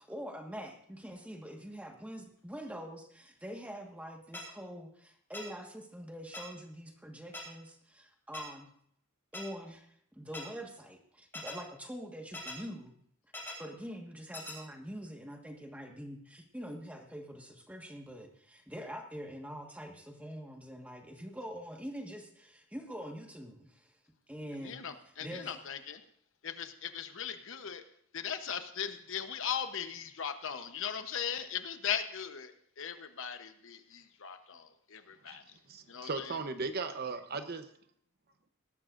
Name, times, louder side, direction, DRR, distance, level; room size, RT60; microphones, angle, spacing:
voice 1, 0.0-8.7 9.3-12.9 13.6-23.9 24.3-24.8 25.2-25.5, equal, 5° right, 2 dB, 1.5 m, -45 dB
sound 1, 4.3-4.4 5.3-5.4 6.3-6.4 7.3-7.4 8.3-8.4 9.3-9.4 10.3-10.4 11.3-11.5 12.3-12.5 13.3-13.5 14.3-14.5, left 2 dB, 10° left, 3.6 m, -41 dB
voice 2, 24.6-26.0 26.4-27.8 28.1-35.4 35.9-36.4, left 8 dB, 60° left, 9 dB, 0.9 m, -38 dB
voice 3, 35.7-37.6, right 4 dB, 45° right, 9 dB, 0.9 m, -37 dB
19.0 x 13.0 x 2.6 m, 0.65 s
head